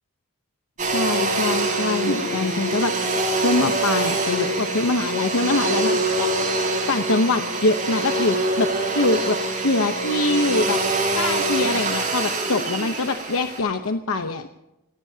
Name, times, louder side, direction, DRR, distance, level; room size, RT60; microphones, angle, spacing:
voice 1, 0.8-2.9 3.4-6.5 6.9-9.4 9.6-10.8 11.1-14.5, left 2 dB, 75° left, 6 dB, 0.9 m, -24 dB
Domestic sounds home sounds, 0.8-13.6, right 2 dB, 35° right, 5.9 m, -24 dB
28.5 x 17.5 x 2.8 m, 0.90 s
head